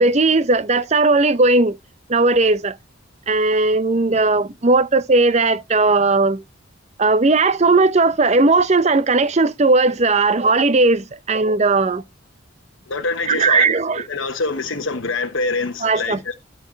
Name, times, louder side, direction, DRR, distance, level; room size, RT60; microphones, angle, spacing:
voice 1, 0.0-1.8 2.1-2.8 3.3-6.4 7.0-12.0 13.3-14.0 15.8-16.3, right 3 dB, 30° right, 0.6 m, -17 dB
voice 2, 12.9-13.6 14.1-16.3, left 3 dB, 65° left, 1.1 m, -25 dB
13.0 x 4.5 x 4.4 m
head